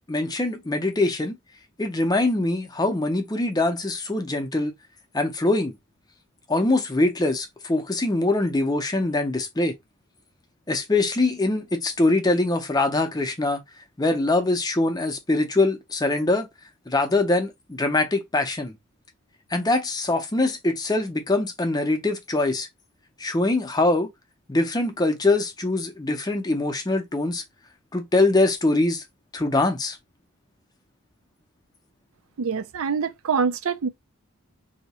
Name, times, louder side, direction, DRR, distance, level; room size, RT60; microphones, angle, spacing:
voice 1, 0.1-1.4 1.8-4.7 5.1-5.7 6.5-9.7 10.7-13.6 14.0-16.5 16.9-18.7 19.5-22.7 23.2-24.1 24.5-27.4 27.9-29.0 29.3-30.0, left 2 dB, 15° left, 0.5 m, -23 dB
voice 2, 32.4-33.9, right 5 dB, 65° right, 0.4 m, -25 dB
2.8 x 2.2 x 4.1 m
head